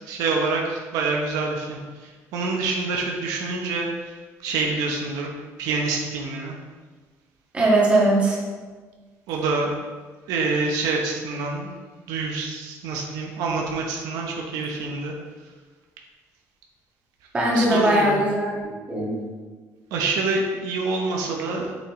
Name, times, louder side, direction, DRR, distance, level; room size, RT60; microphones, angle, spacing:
voice 1, 0.0-5.3 5.6-6.6 9.3-9.8 10.3-11.8 12.1-15.1 17.5-18.2 19.9-21.7, right 3 dB, 90° right, 0 dB, 1.0 m, -26 dB
voice 2, 7.5-8.4 17.3-19.1, right 1 dB, 20° right, -5 dB, 1.9 m, -20 dB
7.4 x 5.9 x 3.2 m, 1.4 s
cardioid pair, 150°, 6 cm